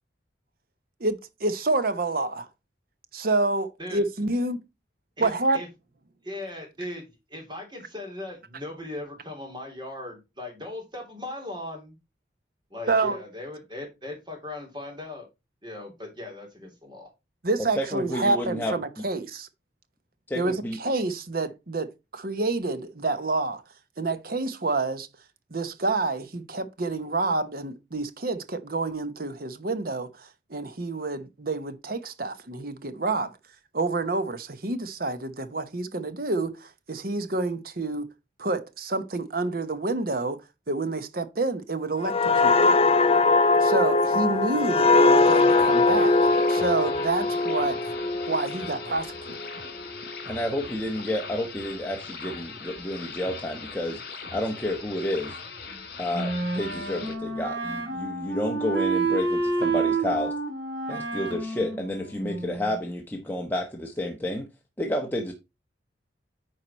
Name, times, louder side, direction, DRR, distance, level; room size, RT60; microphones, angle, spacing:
voice 1, 1.0-2.5 3.1-4.6 5.2-5.6 12.9-13.2 17.4-19.5 20.3-23.6 24.0-25.1 25.5-33.3 33.7-38.1 38.4-40.4 40.7-42.8 43.6-46.2 46.5-47.8 48.3-49.4, right 3 dB, 55° right, 1.0 m, -28 dB
voice 2, 5.2-5.7 6.3-11.9 12.7-15.3 15.6-17.1, left 1 dB, 25° right, 3.1 m, -38 dB
voice 3, 17.8-18.7 20.3-20.8 50.3-54.0 54.3-55.4 56.0-60.3 60.9-64.5 64.8-65.3, left 1 dB, 10° left, 1.1 m, -30 dB
sound 1, 42.0-49.5 49.9-50.1, left 3 dB, 30° left, 0.5 m, -21 dB
sound 2, 45.2-57.1, left 5 dB, 55° left, 2.6 m, -40 dB
Wind instrument woodwind instrument, 56.1-62.7, right 3 dB, 75° right, 3.0 m, -29 dB
9.2 x 4.8 x 4.2 m
head